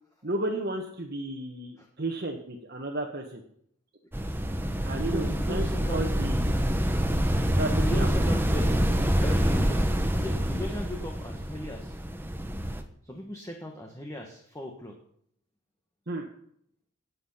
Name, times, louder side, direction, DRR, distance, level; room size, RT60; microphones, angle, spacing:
voice 1, 0.2-3.4 4.8-6.5 7.3-8.1 16.1-16.3, right 2 dB, 45° right, 0 dB, 1.6 m, -33 dB
sound 1, 4.1-12.8, equal, 10° right, 1.1 m, -26 dB
voice 2, 5.0-6.2 7.7-8.8 9.2-9.9 10.2-12.0 13.0-15.0, left 1 dB, 15° left, 2 dB, 1.6 m, -38 dB
18.5 x 8.8 x 5.8 m, 0.67 s
head